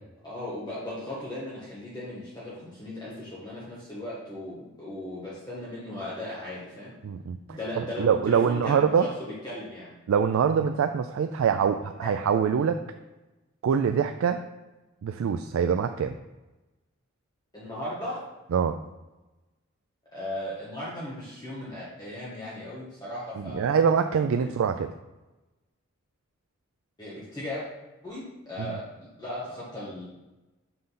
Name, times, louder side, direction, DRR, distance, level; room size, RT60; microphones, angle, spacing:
voice 1, 0.2-6.9 7.5-8.9 9.2-10.0 11.4-11.5 12.0-12.1 17.5-18.2 20.1-23.8 27.0-27.6 28.0-30.0, left 1 dB, 20° left, -8 dB, 1.3 m, -37 dB
voice 2, 7.0-9.1 10.1-12.8 13.6-14.4 15.0-16.1 18.5-18.8 23.4-24.9 28.6-28.8, right 7 dB, 75° right, 8 dB, 0.3 m, -24 dB
5.9 x 3.8 x 5.6 m, 1.1 s
head